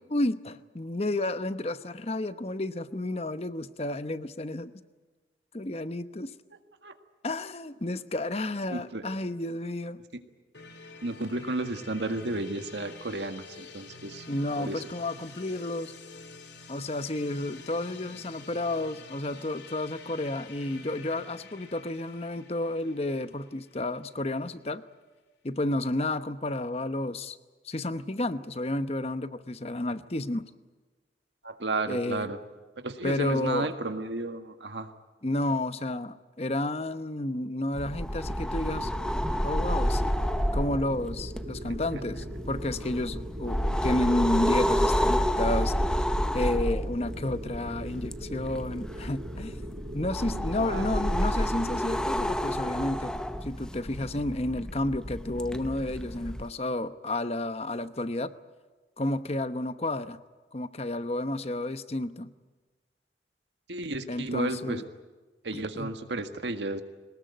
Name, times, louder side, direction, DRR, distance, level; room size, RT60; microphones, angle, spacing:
voice 1, 0.1-4.7 5.5-6.3 7.2-10.0 14.3-15.9 16.7-24.8 25.4-27.4 27.6-30.4 31.9-32.3 33.0-33.7 35.2-38.9 39.4-40.0 40.5-45.7 46.3-49.6 49.9-53.1 53.4-58.3 59.0-60.2 60.5-62.3 64.1-64.9 65.5-65.9, left 1 dB, 35° left, 12 dB, 0.9 m, -31 dB
voice 2, 8.7-9.0 11.0-14.3 14.6-14.8 31.4-32.4 32.8-34.9 50.3-50.9 63.7-64.8 65.4-66.8, right 2 dB, 85° right, 7 dB, 1.8 m, -33 dB
sound 1, 10.5-24.3, left 4 dB, 80° left, 2.2 m, -48 dB
sound 2, 37.8-56.5, equal, 5° left, 0.7 m, -30 dB
sound 3, 38.7-52.1, right 1 dB, 40° right, 1.8 m, -42 dB
22.5 x 20.0 x 9.3 m, 1.3 s
head